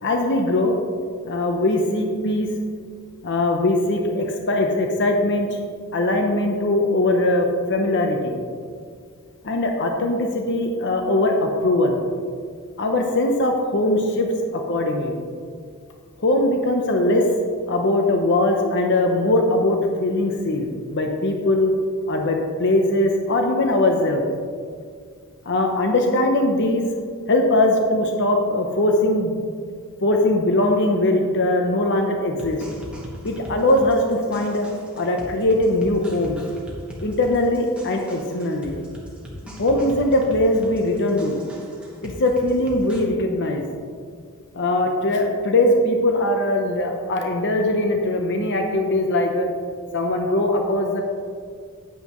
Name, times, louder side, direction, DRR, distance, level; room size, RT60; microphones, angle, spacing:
voice 1, 0.0-0.7 1.3-2.5 3.2-5.5 5.9-8.4 9.4-12.0 12.8-15.2 16.2-17.2 17.7-21.7 22.1-24.2 25.5-26.9 27.3-29.4 30.0-32.6 33.2-34.7 35.0-36.4 37.0-38.8 39.6-41.4 42.0-43.6 44.5-49.5 49.9-51.0, left 1 dB, 55° left, 3 dB, 0.8 m, -21 dB
sound 1, 32.4-43.0, equal, 5° right, 1.5 m, -39 dB
9.5 x 9.3 x 3.0 m, 2.1 s
head